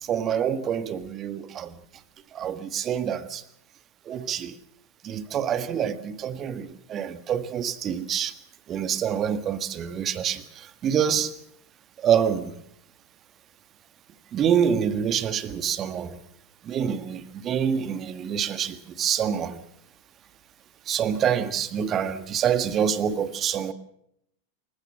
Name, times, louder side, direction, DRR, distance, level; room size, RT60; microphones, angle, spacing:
voice 1, 0.0-1.8 2.3-3.4 4.1-4.6 5.0-8.3 8.7-11.3 12.0-12.6 14.3-16.2 16.6-19.6 20.9-23.7, right 8 dB, 30° right, 13 dB, 1.6 m, -26 dB
27.0 x 16.0 x 7.2 m, 0.75 s
figure-of-eight pair, 90°, 0 cm